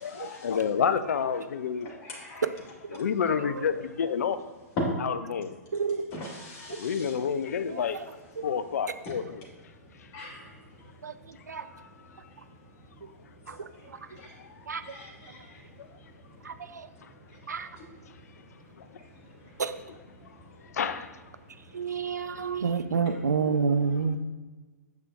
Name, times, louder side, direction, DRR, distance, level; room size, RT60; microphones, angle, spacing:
voice 1, 0.0-1.9 2.3-2.4 2.9-4.4 5.0-5.5 6.7-8.0 8.4-9.4 10.1-10.3 11.7-11.9 15.0-15.1 15.8-15.9 18.8-18.9 20.7-21.1, left 7 dB, 65° left, 0.5 m, -29 dB
voice 2, 2.0-2.4 6.1-7.1 10.1-10.4 14.8-15.1, left 1 dB, 30° left, 1.7 m, -42 dB
voice 3, 5.7-6.0 11.0-11.1 11.5-11.6 14.7-14.8 16.5-16.6 17.5-17.7 19.6-19.7 21.7-24.2, right 5 dB, 80° right, 0.5 m, -27 dB
8.2 x 6.4 x 2.5 m
figure-of-eight pair, 115°, 9 cm